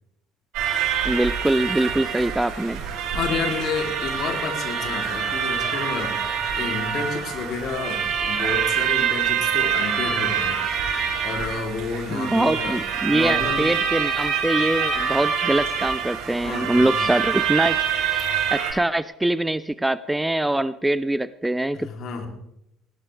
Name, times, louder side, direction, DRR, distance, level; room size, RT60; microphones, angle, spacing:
sound 1, 0.5-18.7, right 7 dB, 60° right, 5.5 m, -25 dB
voice 1, 1.0-2.8 12.1-17.8 18.5-21.9, right 1 dB, 10° right, 17 dB, 0.5 m, -23 dB
voice 2, 3.1-10.6 11.2-12.8 13.1-13.7 16.4-17.1 21.7-22.3, left 5 dB, 50° left, 3 dB, 3.1 m, -30 dB
19.5 x 16.0 x 3.4 m, 0.82 s
figure-of-eight pair, 55°, 0 cm